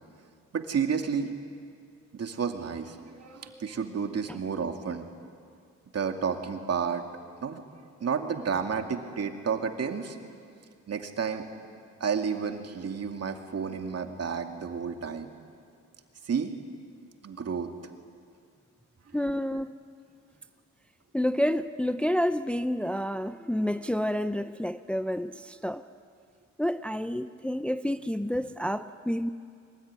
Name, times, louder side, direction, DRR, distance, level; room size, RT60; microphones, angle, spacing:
voice 1, 0.5-1.3 2.1-5.1 5.9-7.0 7.4-7.6 8.0-10.2 10.9-11.4 12.0-15.3 16.3-16.5 17.2-17.7, right 6 dB, 55° right, 5 dB, 2.5 m, -31 dB
voice 2, 3.3-3.6 4.3-4.4 19.1-19.7 21.1-25.8 26.6-29.3, equal, 5° left, 11 dB, 0.6 m, -29 dB
24.0 x 20.0 x 9.7 m, 2.3 s
cardioid pair, 75°, 30 cm